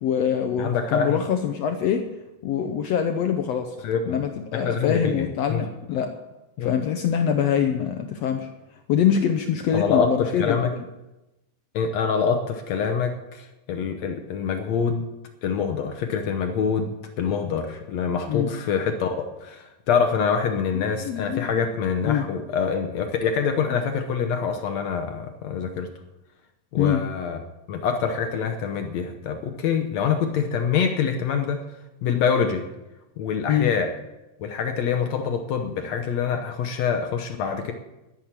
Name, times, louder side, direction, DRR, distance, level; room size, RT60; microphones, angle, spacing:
voice 1, 0.0-2.0 2.4-3.7 4.1-6.1 6.6-8.5 8.9-10.8 18.3-18.5 20.7-21.6 22.0-22.3 26.8-27.0 33.5-33.7, left 8 dB, 85° left, 6 dB, 1.4 m, -24 dB
voice 2, 0.6-1.2 3.8-4.2 4.5-5.6 6.6-6.7 9.7-10.7 11.7-15.0 15.4-25.9 26.7-27.4 27.7-31.6 32.0-32.7 33.2-33.9 34.4-37.7, left 6 dB, 70° left, 5 dB, 1.8 m, -25 dB
11.5 x 10.5 x 7.4 m, 0.98 s
omnidirectional pair, 4.1 m